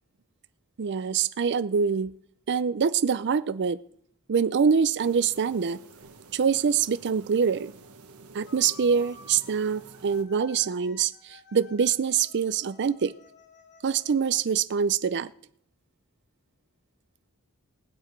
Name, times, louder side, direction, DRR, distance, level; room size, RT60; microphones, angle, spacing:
voice 1, 0.8-2.1 2.5-3.8 4.3-5.8 6.3-7.7 8.3-11.1 11.5-13.1 13.8-15.3, right 6 dB, 50° right, 16 dB, 0.5 m, -24 dB
sound 1, 5.0-10.2, right 3 dB, 85° right, 1.2 m, -50 dB
sound 2, 8.5-14.4, left 2 dB, 50° left, 1.6 m, -54 dB
21.5 x 7.9 x 4.5 m, 0.67 s
head